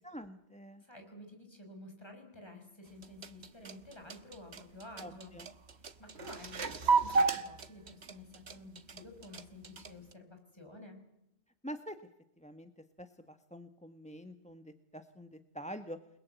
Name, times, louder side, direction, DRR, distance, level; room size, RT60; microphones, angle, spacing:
voice 1, 0.0-0.8 5.0-5.5 11.6-12.0 12.4-12.7 13.0-16.0, equal, 5° left, 9 dB, 1.1 m, -46 dB
voice 2, 0.8-5.4 5.8-11.0, left 2 dB, 25° left, 4 dB, 5.8 m, -51 dB
sound 1, 2.9-10.1, right 4 dB, 75° right, 1.6 m, -33 dB
29.5 x 21.0 x 8.2 m, 0.83 s
omnidirectional pair, 1.1 m